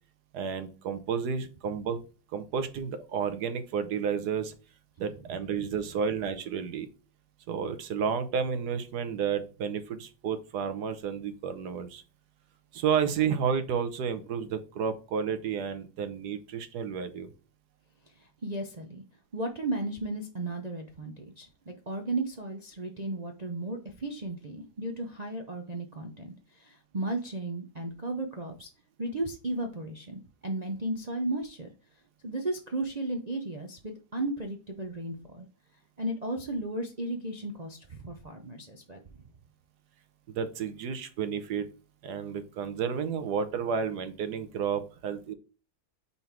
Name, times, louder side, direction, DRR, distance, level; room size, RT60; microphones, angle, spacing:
voice 1, 0.3-2.0 2.3-4.5 5.0-6.9 7.5-12.0 12.7-17.3 40.3-41.7 42.0-45.3, right 7 dB, 70° right, 10 dB, 1.4 m, -31 dB
voice 2, 18.2-19.0 19.3-28.7 29.0-31.7 32.2-35.5 36.0-39.0, right 2 dB, 45° right, 2 dB, 0.5 m, -35 dB
5.4 x 4.1 x 4.5 m, 0.33 s
omnidirectional pair, 1.9 m